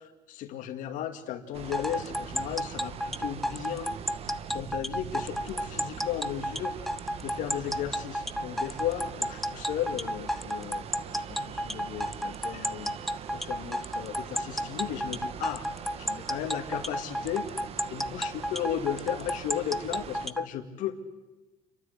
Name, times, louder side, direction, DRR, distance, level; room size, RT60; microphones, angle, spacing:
voice 1, 0.3-3.9 4.5-6.9 7.2-15.7 15.9-17.6 17.9-21.0, left 10 dB, 65° left, 6 dB, 2.2 m, -35 dB
sound 1, 1.5-20.3, right 8 dB, 45° right, 1.2 m, -42 dB
sound 2, 1.7-20.5, equal, ahead, 0.6 m, -31 dB
30.0 x 13.0 x 8.0 m, 1.2 s
cardioid pair, 120°, 14 cm